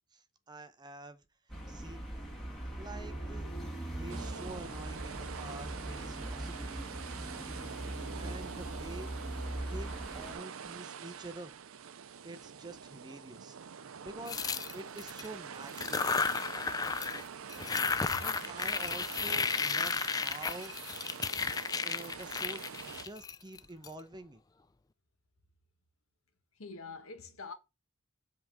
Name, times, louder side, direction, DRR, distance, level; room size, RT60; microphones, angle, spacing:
voice 1, 0.1-1.2 1.7-2.1 2.8-3.5 3.9-6.9 7.2-7.3 8.1-9.1 9.7-9.9 10.1-11.5 12.2-13.6 14.0-16.1 18.2-20.7 21.8-22.7 23.0-24.4, right 2 dB, 20° right, 0.7 m, -47 dB
sound 1, 1.5-10.3, right 1 dB, ahead, 2.6 m, -41 dB
sound 2, 4.1-23.1, right 7 dB, 75° right, 0.5 m, -45 dB
sound 3, 14.3-15.3 15.7-17.2 17.5-23.9, left 5 dB, 15° left, 0.3 m, -33 dB
voice 2, 17.8-18.6 26.6-27.5, left 4 dB, 80° left, 1.3 m, -46 dB
7.7 x 3.6 x 6.3 m
head